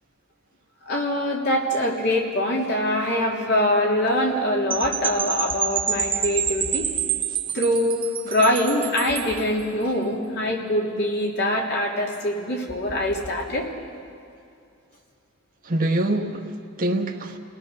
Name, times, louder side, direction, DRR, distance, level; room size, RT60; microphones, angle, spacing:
voice 1, 0.9-6.9 7.5-13.7, left 1 dB, 55° left, 0 dB, 3.3 m, -23 dB
Percussion / Wind chime, 4.7-9.4, right 8 dB, 25° right, 0.9 m, -27 dB
voice 2, 15.6-17.4, right 1 dB, 45° right, 2 dB, 1.5 m, -25 dB
29.5 x 18.5 x 6.7 m, 2.4 s
head